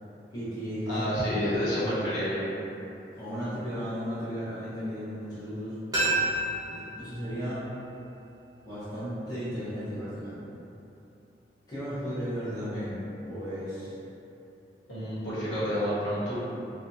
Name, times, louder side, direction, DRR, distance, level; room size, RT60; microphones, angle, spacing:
voice 1, 0.3-1.2 3.1-5.8 6.7-7.6 8.6-10.3 11.7-14.0, equal, 20° left, -14 dB, 0.9 m, -35 dB
voice 2, 0.9-2.4 14.9-16.3, equal, 85° left, -12 dB, 1.1 m, -29 dB
sound 1, 5.9-8.7 9.0-9.1, right 1 dB, 20° right, 0.7 m, -32 dB
2.7 x 2.3 x 2.6 m, 2.9 s
head